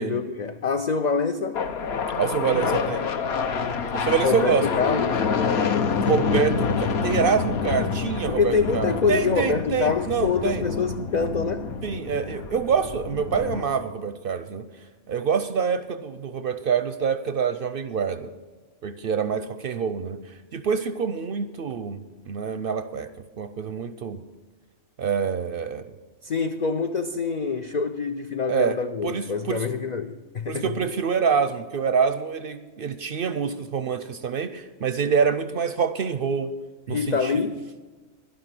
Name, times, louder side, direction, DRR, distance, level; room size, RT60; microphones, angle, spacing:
voice 1, 0.0-1.6 4.2-5.3 8.3-11.7 26.2-30.7 36.9-37.8, left 5 dB, 70° left, 0.4 m, -25 dB
sound 1, 1.5-13.6, left 5 dB, 55° left, 1.0 m, -27 dB
voice 2, 2.2-3.1 3.9-4.7 6.1-10.6 11.8-14.6 15.1-18.3 18.8-23.1 23.4-24.2 25.0-25.9 28.5-28.8 29.0-29.6 30.5-36.5 36.9-37.4, right 6 dB, 60° right, 0.6 m, -26 dB
11.5 x 11.5 x 6.0 m
omnidirectional pair, 1.4 m